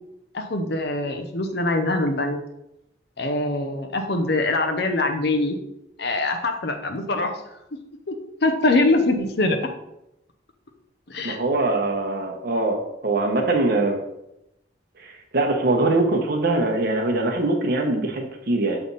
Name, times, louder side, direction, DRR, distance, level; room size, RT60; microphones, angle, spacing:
voice 1, 0.3-2.4 3.2-5.6 6.0-7.3 8.1-9.6 11.1-11.4, left 2 dB, 60° left, 5 dB, 0.8 m, -23 dB
voice 2, 11.2-12.8 13.0-14.0 15.3-18.8, right 2 dB, 55° right, 2 dB, 1.0 m, -22 dB
7.0 x 3.4 x 4.0 m, 0.85 s
head